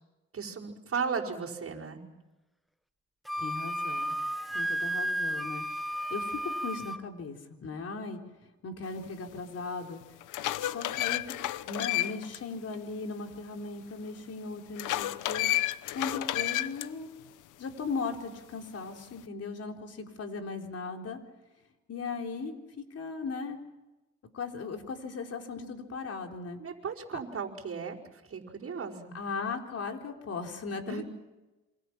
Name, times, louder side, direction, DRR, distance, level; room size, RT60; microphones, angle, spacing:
voice 1, 0.3-2.0 26.6-28.0 28.3-29.1 30.9-31.0, right 5 dB, 45° right, -3 dB, 5.1 m, -35 dB
Wind instrument woodwind instrument, 3.3-7.0, equal, ahead, 0.9 m, -33 dB
voice 2, 3.4-4.2 4.5-5.6 6.1-8.2 8.6-10.0 10.6-15.5 15.9-17.1 17.6-21.2 21.9-23.6 24.3-26.6 29.1-31.1, left 4 dB, 55° left, 3 dB, 3.9 m, -37 dB
sound 1, 9.4-9.5 10.0-12.4 12.7-12.8 14.8-16.9, left 15 dB, 90° left, 0.8 m, -31 dB
28.0 x 25.0 x 6.0 m, 1.1 s
cardioid pair, 90°, 30 cm